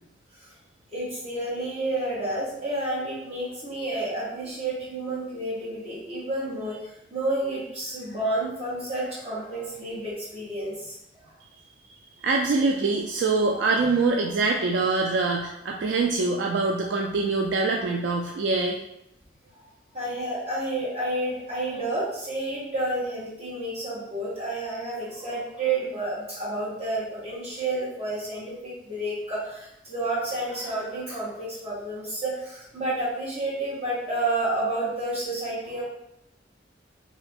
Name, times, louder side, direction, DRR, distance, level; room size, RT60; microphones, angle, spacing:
voice 1, 0.9-11.3 12.6-12.7 13.5-13.6 19.9-35.8, right 2 dB, 35° right, -8 dB, 1.3 m, -30 dB
voice 2, 12.2-18.8, right 3 dB, 70° right, 1 dB, 0.3 m, -24 dB
2.8 x 2.6 x 3.4 m, 0.80 s
head